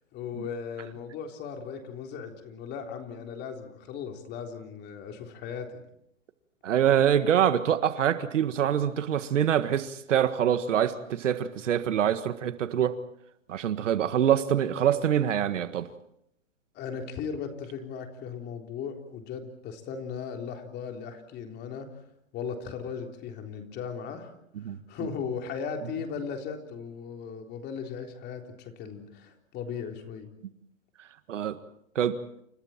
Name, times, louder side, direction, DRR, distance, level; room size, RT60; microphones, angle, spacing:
voice 1, 0.1-5.7 16.7-21.9 22.3-24.3 24.6-30.3, left 6 dB, 25° left, 3.7 m, -37 dB
voice 2, 6.6-12.9 13.5-15.9 24.6-24.8 31.3-31.6 32.0-32.2, right 9 dB, 65° right, 1.8 m, -25 dB
29.5 x 29.0 x 4.4 m
hypercardioid pair, 135°, 39 cm